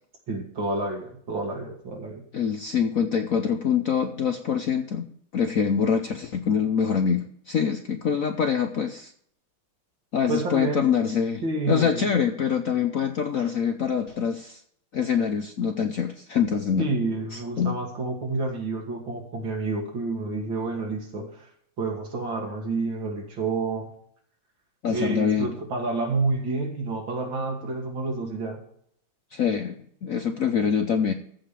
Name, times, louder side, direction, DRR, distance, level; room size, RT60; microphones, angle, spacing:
voice 1, 0.3-2.2 10.3-10.9 11.4-12.1 13.4-13.5 16.8-21.5 21.8-23.9 24.9-28.6, right 3 dB, 65° right, 1 dB, 3.2 m, -29 dB
voice 2, 2.3-5.1 5.3-9.1 10.1-14.6 14.9-16.9 17.6-17.8 24.8-25.5 29.3-29.7 30.0-31.1, left 7 dB, 60° left, 6 dB, 0.9 m, -25 dB
14.5 x 5.1 x 7.3 m, 0.65 s
omnidirectional pair, 2.3 m